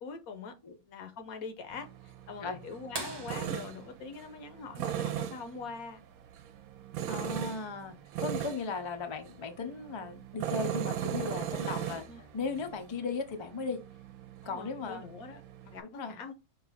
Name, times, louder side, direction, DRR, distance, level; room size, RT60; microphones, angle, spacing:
voice 1, 0.0-0.5 0.9-6.0 12.1-12.3 14.4-16.3, left 4 dB, 80° left, 1.3 m, -43 dB
Tools, 1.7-15.8, right 11 dB, 85° right, 1.1 m, -39 dB
sound 1, 2.9-5.4 7.3-7.4 9.7-9.8 11.5-11.7 12.5-12.6, right 3 dB, 40° right, 0.3 m, -43 dB
voice 2, 7.1-12.1 12.3-13.8 14.5-15.1 15.8-16.2, left 4 dB, 45° left, 0.3 m, -37 dB
5.5 x 2.4 x 4.0 m
omnidirectional pair, 1.5 m